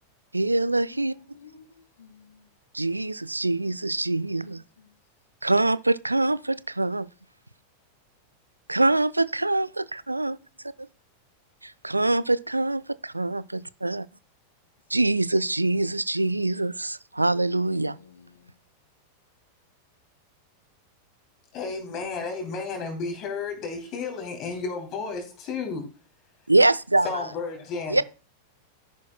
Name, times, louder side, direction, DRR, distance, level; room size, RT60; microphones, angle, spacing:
voice 1, 0.3-1.1 2.7-4.6 5.4-7.1 8.7-10.4 10.8-10.9 11.6-14.1 14.9-18.0 26.5-27.1 27.9-28.0, right 2 dB, 85° right, 0.4 m, -24 dB
voice 2, 0.9-2.6 3.4-3.7 4.4-5.0 14.9-15.1 16.0-16.1 17.4-18.6, left 6 dB, 70° left, 2.0 m, -53 dB
voice 3, 21.5-25.9 27.0-28.0, left 4 dB, 35° left, 3.0 m, -32 dB
13.0 x 10.5 x 2.2 m
figure-of-eight pair, 90°, 0 cm